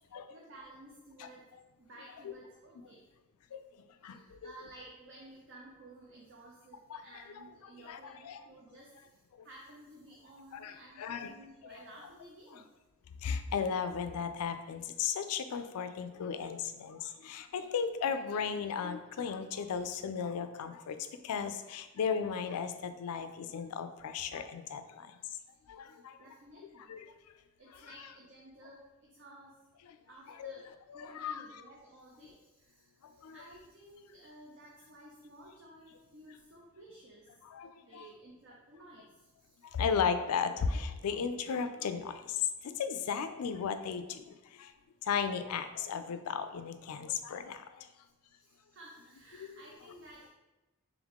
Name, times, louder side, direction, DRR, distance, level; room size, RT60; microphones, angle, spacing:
voice 1, 0.0-3.1 4.0-12.7 25.2-27.0 27.6-29.6 30.1-30.7 30.9-37.3 37.8-39.7 48.2-50.3, right 1 dB, 55° right, -2 dB, 0.6 m, -55 dB
voice 2, 4.0-4.5 6.9-7.0 7.8-8.4 9.4-9.5 10.5-11.3 11.6-11.8 12.5-12.6 13.2-21.0 21.2-25.1 25.7-26.2 26.9-27.1 29.9-30.0 30.3-30.5 30.9-31.4 33.0-33.4 37.4-38.0 39.6-44.7 45.0-47.9 49.4-49.5, left 6 dB, 90° left, 9 dB, 0.4 m, -35 dB
3.6 x 3.4 x 3.6 m, 1.1 s
head